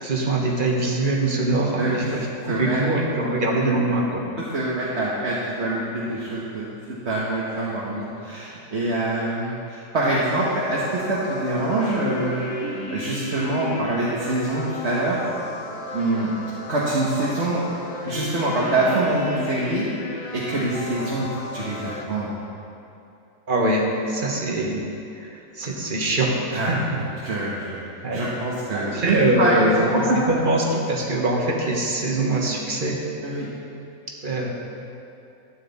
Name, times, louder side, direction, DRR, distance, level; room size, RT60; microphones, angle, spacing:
voice 1, 0.0-4.2 23.5-24.9 25.2-27.4 28.0-28.2 28.7-33.0 34.2-34.5, right 2 dB, 40° right, -1 dB, 1.5 m, -23 dB
voice 2, 1.8-2.2 2.5-2.8 4.4-6.7 7.0-15.3 15.9-17.6 18.1-19.8 20.3-21.3 21.5-22.3 26.5-26.7 27.2-27.8 28.1-30.2 33.2-33.5, right 2 dB, 55° right, -6 dB, 1.5 m, -25 dB
sound 1, 10.1-22.0, left 3 dB, 85° left, 1.4 m, -35 dB
13.0 x 9.2 x 4.1 m, 2.7 s
omnidirectional pair, 1.4 m